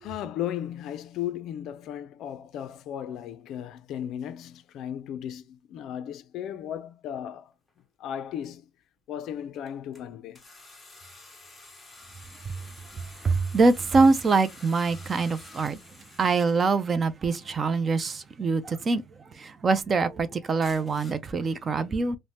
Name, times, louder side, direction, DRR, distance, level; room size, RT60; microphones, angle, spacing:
voice 1, 0.0-7.5 8.0-8.7 9.1-10.4, left 10 dB, 60° left, 0.4 m, -35 dB
sound 1, 7.7-7.8 8.4-8.5 9.5-10.0 10.3-16.7 18.8-19.0 19.5-19.6 20.6-21.1, left 2 dB, 10° left, 0.8 m, -49 dB
voice 2, 13.2-15.8 16.2-19.0 19.4-22.2, right 4 dB, 30° right, 0.3 m, -24 dB
2.7 x 2.0 x 3.1 m
cardioid pair, 130°, 0 cm